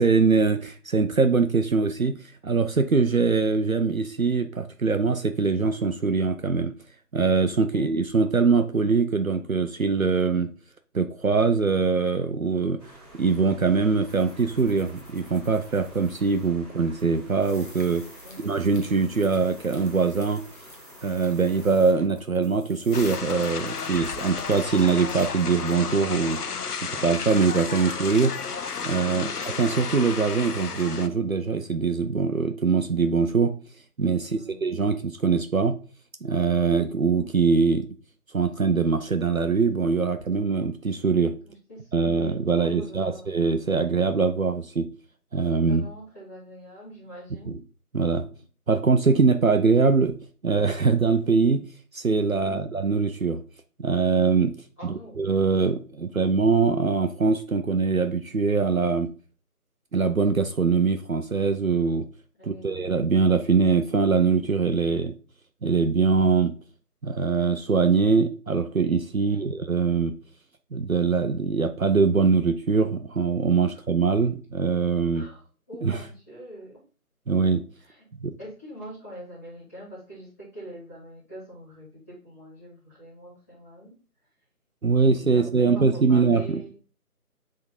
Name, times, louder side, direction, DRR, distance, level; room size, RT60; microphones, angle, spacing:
voice 1, 0.0-2.2 2.4-6.7 7.1-10.5 10.9-12.8 13.1-18.0 18.4-20.4 21.0-26.4 26.9-28.3 28.8-29.3 29.6-33.5 34.0-35.8 36.2-37.9 38.3-41.4 41.9-44.9 45.3-45.8 47.9-48.3 48.7-50.2 50.4-51.6 51.9-53.4 53.8-54.6 54.9-59.1 59.9-62.1 62.5-65.1 65.6-66.5 67.0-70.2 70.7-75.3 75.8-76.0 77.3-77.6 78.2-78.4 84.8-86.6, right 4 dB, 60° right, 8 dB, 0.7 m, -23 dB
voice 2, 7.7-8.1 18.2-18.6 29.0-29.5 34.2-34.7 41.4-43.4 45.7-47.7 52.3-52.8 54.8-55.4 62.4-62.9 69.2-69.5 73.7-73.8 75.1-76.8 77.8-78.1 78.4-84.0 85.0-86.7, right 1 dB, 10° left, -11 dB, 2.6 m, -44 dB
sound 1, 12.8-22.0, right 1 dB, 15° right, 2.2 m, -49 dB
sound 2, 14.1-16.5 16.7-25.1, equal, 35° left, 1.0 m, -50 dB
sound 3, 22.9-31.1, left 5 dB, 75° left, 0.7 m, -32 dB
7.7 x 3.7 x 4.1 m, 0.39 s
figure-of-eight pair, 170°, 46 cm